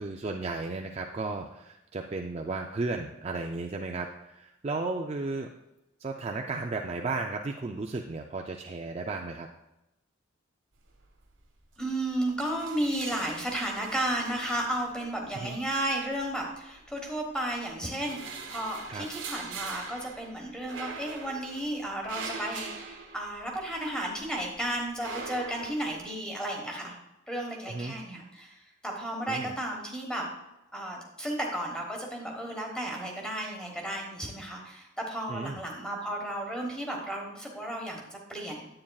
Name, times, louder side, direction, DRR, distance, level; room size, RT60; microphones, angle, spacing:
voice 1, 0.0-5.5 6.0-9.5 15.3-15.6 18.9-19.1 27.7-28.0 29.3-29.5 35.3-35.6, right 3 dB, 30° right, 2 dB, 0.3 m, -34 dB
sound 1, 10.9-11.4 11.6-11.8 12.1-15.3 16.2-17.1 17.6-23.8 24.2-26.1, right 4 dB, 65° right, 1.2 m, -43 dB
voice 2, 11.8-27.0 27.3-30.3 30.7-38.7, right 1 dB, 5° left, 0 dB, 1.2 m, -33 dB
9.5 x 8.6 x 2.3 m, 0.90 s
head